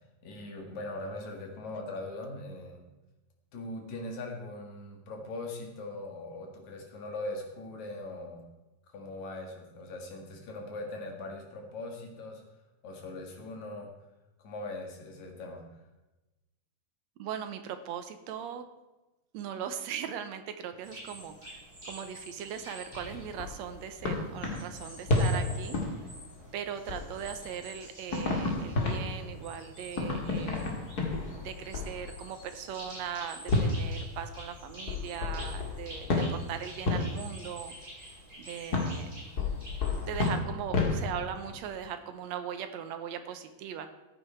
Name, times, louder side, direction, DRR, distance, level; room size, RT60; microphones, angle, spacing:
voice 1, 0.2-2.8 3.5-8.4 8.9-12.4 12.8-13.9 14.4-15.6, left 2 dB, 60° left, 2 dB, 3.2 m, -40 dB
voice 2, 17.2-18.7 19.3-26.0 26.5-30.8 31.4-37.7 38.4-39.1 40.1-43.9, right 8 dB, 70° right, 9 dB, 1.8 m, -39 dB
sound 1, 20.8-40.3, right 1 dB, 10° right, 5.0 m, -49 dB
sound 2, 22.9-26.5 26.9-27.7 28.1-32.5 33.5-37.6 38.7-41.8, left 2 dB, 35° left, 2.0 m, -32 dB
14.5 x 9.5 x 4.5 m, 1.1 s
omnidirectional pair, 3.8 m